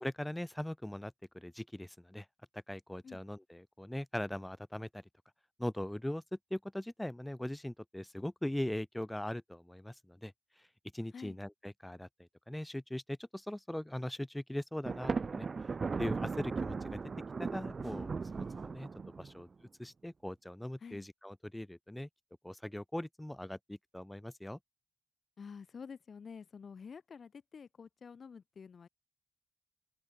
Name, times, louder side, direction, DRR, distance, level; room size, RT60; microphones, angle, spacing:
voice 1, 0.0-2.3 2.5-5.0 5.6-6.2 6.5-10.7 10.9-15.7 16.0-17.0 17.4-18.9 19.2-22.1 22.4-24.6, left 1 dB, 10° left, 0.6 m, -40 dB
Thunder, 14.9-19.4, right 4 dB, 45° right, 1.7 m, -37 dB
voice 2, 25.4-28.9, left 6 dB, 55° left, 3.6 m, -49 dB
open air
cardioid pair, 70°, 0 cm